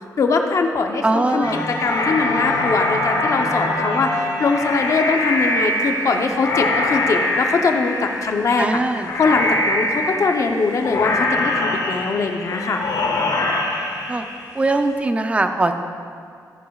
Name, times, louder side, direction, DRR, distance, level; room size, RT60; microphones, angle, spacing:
voice 1, 0.2-1.4 1.8-8.8 9.2-12.8, left 4 dB, 50° left, 4 dB, 0.8 m, -21 dB
voice 2, 1.0-1.7 8.6-9.1 14.1-14.2 14.5-15.7, right 2 dB, 20° right, 6 dB, 0.5 m, -20 dB
sound 1, 1.4-14.8, left 2 dB, 75° left, 1.4 m, -23 dB
14.0 x 10.5 x 2.4 m, 2.3 s
wide cardioid pair, 145°, 7 cm